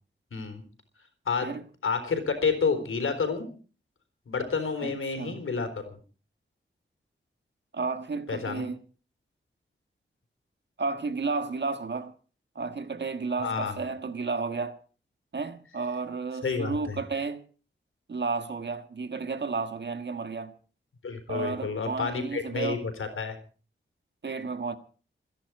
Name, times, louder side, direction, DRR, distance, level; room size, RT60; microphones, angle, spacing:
voice 1, 0.3-0.6 1.3-1.5 1.8-3.5 4.3-6.0 8.3-8.6 13.4-13.8 16.4-17.0 21.0-23.4, left 5 dB, 90° left, 4.1 m, -29 dB
voice 2, 4.8-5.4 7.7-8.8 10.8-12.1 12.6-14.8 15.3-17.4 18.1-20.5 21.3-22.9 24.2-24.8, right 4 dB, 60° right, 1.6 m, -32 dB
27.5 x 10.5 x 4.7 m
wide cardioid pair, 105°, 21 cm